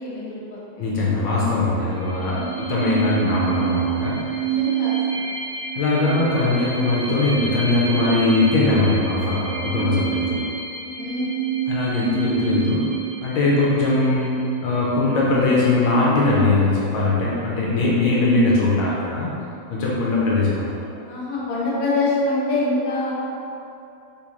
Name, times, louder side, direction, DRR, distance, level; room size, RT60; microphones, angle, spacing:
voice 1, 0.0-0.9 2.2-2.7 4.4-5.2 11.0-11.4 21.0-23.1, left 2 dB, 55° left, -8 dB, 1.1 m, -25 dB
voice 2, 0.8-4.4 5.8-10.4 11.7-12.9 13.2-14.3 14.6-19.3 19.7-20.8, left 2 dB, 80° left, -6 dB, 1.3 m, -20 dB
sound 1, 1.9-15.2, right 7 dB, 35° right, 0.8 m, -28 dB
3.6 x 2.5 x 2.9 m, 2.7 s
omnidirectional pair, 2.1 m